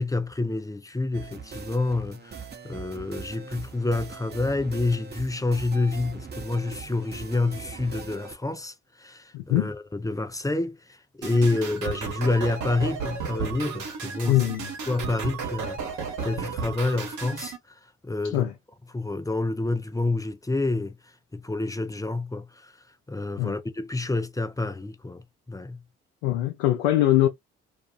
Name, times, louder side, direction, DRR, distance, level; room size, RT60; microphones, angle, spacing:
voice 1, 0.0-2.4 2.6-8.7 9.0-10.8 11.2-14.4 14.9-15.8 16.2-17.5 18.0-18.5 18.9-20.9 21.3-22.7 23.1-25.2 25.5-25.8, left 2 dB, 10° left, 0.6 m, -28 dB
sound 1, 1.1-8.4, right 5 dB, 30° right, 0.9 m, -41 dB
voice 2, 9.3-9.7 14.3-14.7 18.2-18.5 23.4-23.5 26.2-27.3, left 14 dB, 85° left, 0.5 m, -22 dB
sound 2, 11.2-17.6, right 6 dB, 60° right, 1.1 m, -33 dB
2.6 x 2.3 x 2.4 m
hypercardioid pair, 45°, 33 cm